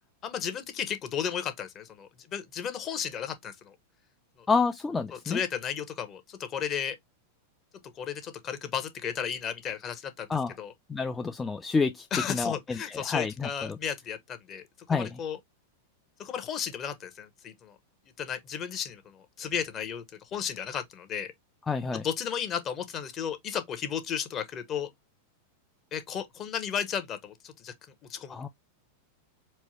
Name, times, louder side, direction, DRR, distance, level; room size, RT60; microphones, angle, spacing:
voice 1, 0.2-3.7 4.4-4.5 5.1-7.0 8.0-10.3 10.6-10.7 12.1-14.6 14.9-15.4 16.2-17.8 18.2-20.0 20.3-21.3 21.9-24.9 25.9-27.7 28.1-28.4, left 8 dB, 35° left, 0.9 m, -34 dB
voice 2, 4.5-5.4 10.3-10.5 10.9-13.8 14.9-15.2 21.7-22.0 28.3-28.5, left 4 dB, 15° left, 0.4 m, -29 dB
4.4 x 2.2 x 3.0 m
hypercardioid pair, 110°, 0 cm